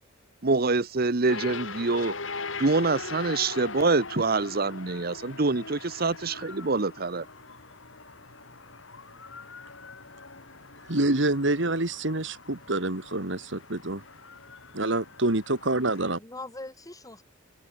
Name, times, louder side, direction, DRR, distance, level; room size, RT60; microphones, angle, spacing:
voice 1, 0.4-2.1 2.6-7.2, right 3 dB, 50° right, 1.0 m, -25 dB
sound 1, 1.3-16.2, left 4 dB, 75° left, 5.2 m, -41 dB
voice 2, 10.9-14.0 14.7-16.2, right 2 dB, 65° right, 2.4 m, -27 dB
voice 3, 15.6-17.2, left 2 dB, 20° left, 3.1 m, -42 dB
head